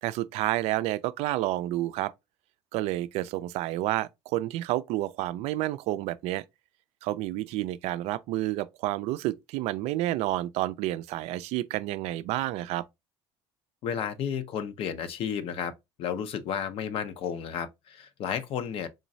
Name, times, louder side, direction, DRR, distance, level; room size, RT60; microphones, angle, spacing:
voice 1, 0.0-2.1 2.7-6.4 7.0-12.8, right 15 dB, 75° right, 0.4 m, -30 dB
voice 2, 13.8-15.7 16.0-18.9, left 8 dB, 55° left, 0.6 m, -32 dB
3.8 x 3.0 x 2.6 m
cardioid pair, 110°, 11 cm